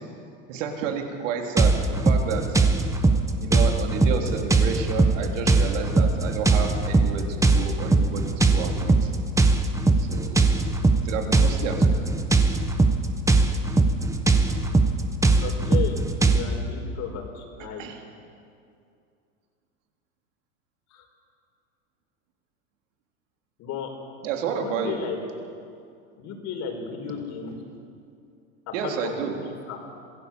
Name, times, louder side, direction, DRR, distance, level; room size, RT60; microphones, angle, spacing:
voice 1, 0.5-2.6 3.4-9.1 10.0-10.5 11.0-12.0 17.8-18.0 24.2-25.0 28.7-29.3, right 6 dB, 70° right, 3 dB, 3.6 m, -30 dB
sound 1, 1.6-16.4, right 3 dB, 10° right, 1.2 m, -20 dB
voice 2, 15.4-16.0 16.2-17.9 20.9-21.1 23.6-23.9 24.5-25.2 26.2-27.5 28.7-29.2 29.4-29.8, left 7 dB, 45° left, 3 dB, 4.7 m, -34 dB
25.5 x 17.0 x 7.5 m, 2.4 s
supercardioid pair, 125°, 39 cm